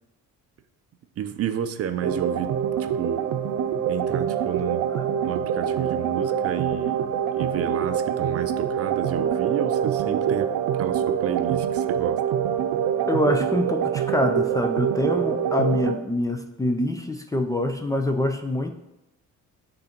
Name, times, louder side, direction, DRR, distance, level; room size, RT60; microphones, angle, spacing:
voice 1, 1.2-3.3 3.9-4.9 5.2-12.2, right 9 dB, 50° right, 9 dB, 0.5 m, -31 dB
sound 1, 2.0-15.9, right 8 dB, 85° right, 0.7 m, -25 dB
voice 2, 13.1-18.7, left 1 dB, 10° left, 5 dB, 0.4 m, -25 dB
6.2 x 3.8 x 5.9 m, 0.97 s
cardioid pair, 135°, 32 cm